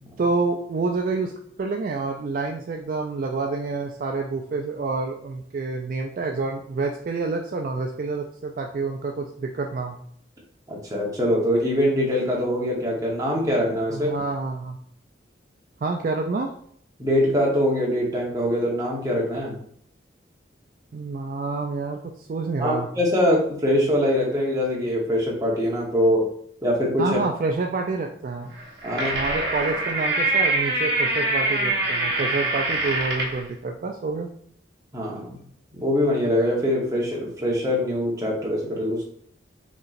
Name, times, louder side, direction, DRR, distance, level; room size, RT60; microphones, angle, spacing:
voice 1, 0.2-1.3 1.6-10.0 13.9-14.8 15.8-16.5 20.9-22.9 27.0-28.6 29.1-34.3, right 3 dB, 50° right, 3 dB, 0.3 m, -28 dB
voice 2, 10.7-14.1 17.0-19.6 22.6-26.3 26.6-27.2 28.8-29.2 34.9-35.4 35.7-39.1, equal, 20° right, -3 dB, 0.9 m, -23 dB
sound 1, 28.6-33.4, right 2 dB, 70° right, 0.9 m, -24 dB
5.2 x 3.0 x 2.5 m, 0.63 s
head